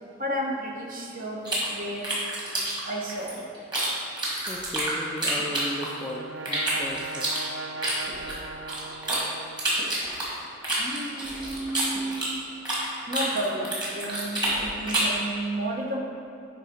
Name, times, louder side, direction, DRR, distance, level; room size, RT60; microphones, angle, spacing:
voice 1, 0.2-2.1 2.8-3.4 10.8-12.3 13.1-16.0, right 1 dB, 45° right, -1 dB, 1.0 m, -32 dB
sound 1, 1.5-3.9 4.2-6.1 6.5-9.2 9.6-12.9 13.1-15.2, right 1 dB, 20° right, 1.8 m, -28 dB
voice 2, 4.5-7.3, equal, 10° left, 0 dB, 0.4 m, -36 dB
Brass instrument, 5.2-10.0, right 3 dB, 70° right, 0.5 m, -40 dB
9.1 x 3.7 x 5.1 m, 2.5 s
head